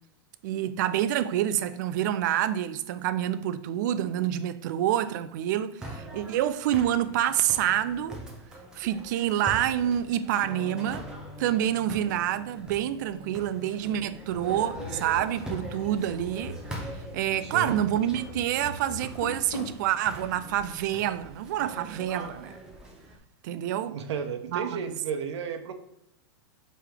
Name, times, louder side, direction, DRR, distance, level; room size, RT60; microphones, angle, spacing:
voice 1, 0.4-8.2 8.7-11.1 11.4-16.6 17.1-22.6 23.4-24.0 24.5-24.8, right 11 dB, 45° right, 0.4 m, -27 dB
sound 1, 5.8-23.2, right 1 dB, 5° right, 0.7 m, -43 dB
Electric guitar, 10.4-18.3, left 4 dB, 85° left, 1.3 m, -49 dB
sound 2, 14.3-19.8, left 4 dB, 40° left, 0.7 m, -41 dB
voice 2, 17.4-17.8 23.9-25.7, right 6 dB, 85° right, 0.9 m, -33 dB
7.4 x 3.4 x 3.7 m
supercardioid pair, 175°, 14 cm